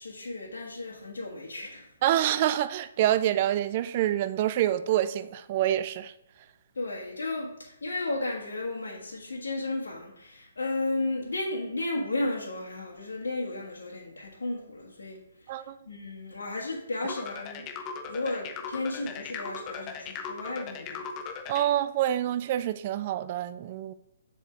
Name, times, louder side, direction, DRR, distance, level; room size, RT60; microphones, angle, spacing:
voice 1, 0.0-1.9 6.7-15.6 15.9-17.7 18.0-21.1, left 2 dB, 80° left, 1.3 m, -34 dB
voice 2, 2.0-6.1 15.5-15.7 21.5-23.9, right 12 dB, 40° right, 0.3 m, -26 dB
sound 1, 17.1-21.7, left 6 dB, 25° left, 0.7 m, -38 dB
7.2 x 3.6 x 4.4 m
hypercardioid pair, 140°, 0 cm